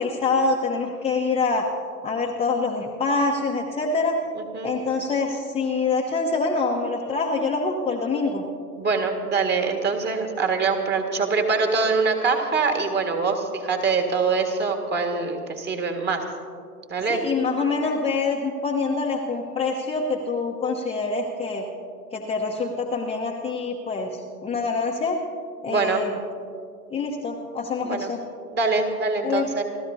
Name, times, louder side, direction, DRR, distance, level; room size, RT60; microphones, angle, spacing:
voice 1, 0.0-1.7 2.0-4.2 4.6-8.5 17.1-21.7 22.1-25.2 25.6-26.2 26.9-28.2 29.2-29.5, left 4 dB, 10° left, -2 dB, 1.0 m, -25 dB
voice 2, 4.4-4.7 8.8-16.2 16.9-17.2 25.7-26.0 27.8-28.1 28.5-29.6, right 4 dB, 20° right, 3 dB, 1.8 m, -24 dB
29.5 x 13.5 x 2.8 m, 2.2 s
figure-of-eight pair, 100°, 47 cm